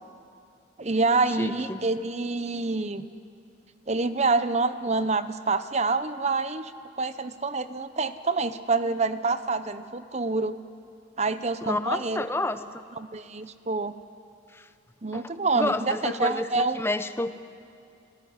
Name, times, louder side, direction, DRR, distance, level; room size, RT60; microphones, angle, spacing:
voice 1, 0.8-3.0 3.9-6.7 7.0-10.6 11.2-12.2 13.0-13.9 15.0-16.8, right 3 dB, 35° right, 12 dB, 0.8 m, -27 dB
voice 2, 1.4-1.8 11.6-12.6 14.5-14.7 15.1-15.2 15.5-17.4, left 2 dB, 15° left, 11 dB, 0.8 m, -29 dB
30.0 x 15.0 x 9.7 m, 2.4 s
head